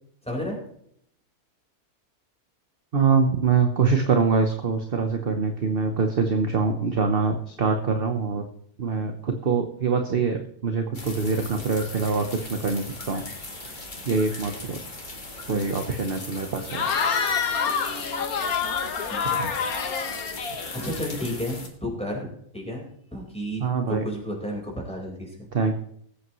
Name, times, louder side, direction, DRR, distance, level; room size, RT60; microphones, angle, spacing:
voice 1, 0.2-0.6 15.5-15.7 17.6-17.7 18.0-18.1 19.1-19.3 19.8-20.2 20.7-25.5, equal, 5° left, -2 dB, 4.4 m, -33 dB
voice 2, 2.9-8.5 8.8-13.3 14.1-14.8 15.5-16.9 19.4-19.5 23.6-24.1 25.5-25.8, right 5 dB, 45° right, 5 dB, 1.1 m, -24 dB
sound 1, 10.9-21.7, left 2 dB, 30° left, 2.0 m, -39 dB
Cheering / Crowd, 16.7-21.3, left 6 dB, 75° left, 1.6 m, -27 dB
20.5 x 8.5 x 3.1 m, 0.67 s
omnidirectional pair, 1.6 m